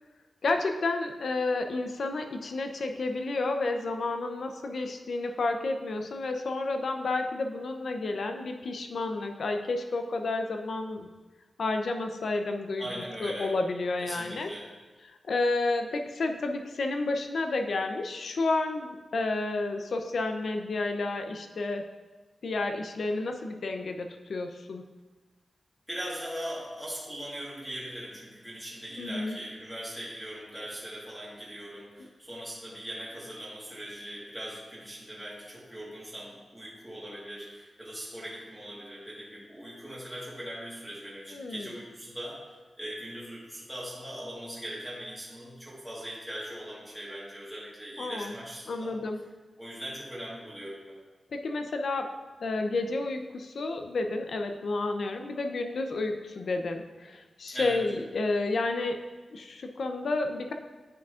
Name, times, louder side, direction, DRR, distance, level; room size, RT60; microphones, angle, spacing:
voice 1, 0.4-11.1 11.6-12.9 13.2-14.5 15.1-21.8 22.4-24.8 29.0-29.4 32.0-32.1 41.3-41.7 48.0-48.3 48.7-49.2 51.3-52.1 52.4-59.0 59.3-60.5, left 3 dB, 60° left, 5 dB, 0.6 m, -31 dB
voice 2, 12.8-13.5 14.0-14.6 25.9-42.4 42.8-48.9 49.6-50.9 57.5-57.8, equal, ahead, -7 dB, 1.5 m, -40 dB
9.5 x 7.3 x 2.5 m, 1.3 s
wide cardioid pair, 170°, 0 cm